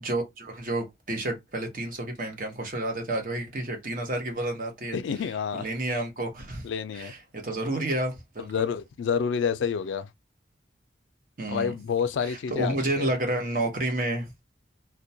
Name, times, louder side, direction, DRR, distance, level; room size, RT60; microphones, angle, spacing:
voice 1, 0.0-6.7 6.9-8.7 11.4-11.7 12.2-14.4, right 1 dB, 45° right, 0.7 m, -30 dB
voice 2, 4.9-5.7 6.6-7.1 8.4-10.1 11.5-13.1, left 6 dB, 85° left, 0.3 m, -29 dB
2.2 x 2.1 x 2.6 m
head